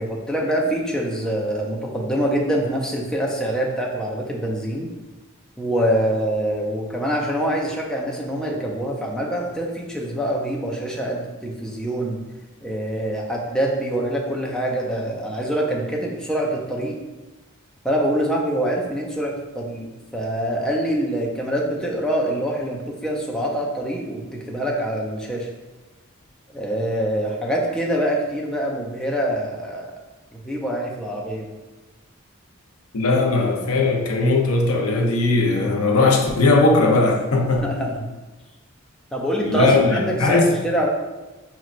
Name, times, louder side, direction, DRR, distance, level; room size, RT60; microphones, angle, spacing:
voice 1, 0.0-4.9 5.6-12.2 12.6-16.9 17.8-24.2 24.5-25.5 26.5-29.9 30.3-31.5 37.6-38.1 39.1-40.9, right 1 dB, 5° left, -2 dB, 0.4 m, -25 dB
voice 2, 32.9-37.7 39.4-40.4, left 3 dB, 90° left, 1 dB, 0.7 m, -19 dB
5.3 x 3.0 x 2.5 m, 1.2 s
head